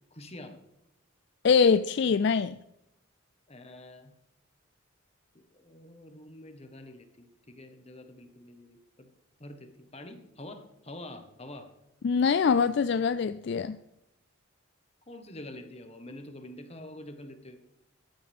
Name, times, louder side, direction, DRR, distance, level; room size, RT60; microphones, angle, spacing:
voice 1, 0.1-0.6 3.5-4.1 5.3-9.1 9.4-11.7 15.1-17.6, left 1 dB, 30° left, 1.4 m, -46 dB
voice 2, 1.4-2.6 12.0-13.8, left 5 dB, 55° left, 0.3 m, -23 dB
15.0 x 12.0 x 3.6 m
head